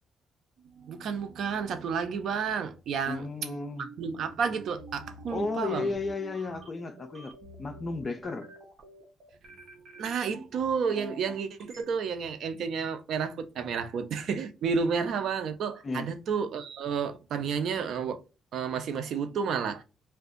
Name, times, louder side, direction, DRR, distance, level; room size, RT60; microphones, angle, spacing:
voice 1, 0.7-3.3 3.8-5.9 9.5-18.2 18.5-19.8, right 6 dB, 70° right, 0.5 m, -31 dB
voice 2, 3.1-3.9 5.3-8.5 15.8-16.1, left 3 dB, 35° left, 0.4 m, -34 dB
sound 1, 3.4-11.8, right 2 dB, 50° right, 0.8 m, -47 dB
2.5 x 2.3 x 3.6 m
cardioid pair, 90°, 0 cm